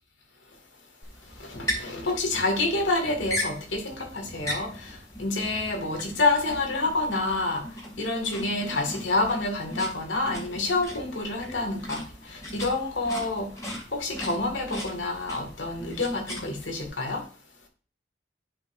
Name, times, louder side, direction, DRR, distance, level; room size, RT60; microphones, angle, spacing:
sound 1, 1.0-16.9, left 1 dB, 20° left, 2.5 m, -38 dB
voice 1, 1.4-7.7 8.0-12.0 12.3-13.5 13.9-17.2, left 2 dB, 90° left, 2.1 m, -28 dB
9.8 x 5.2 x 2.6 m
head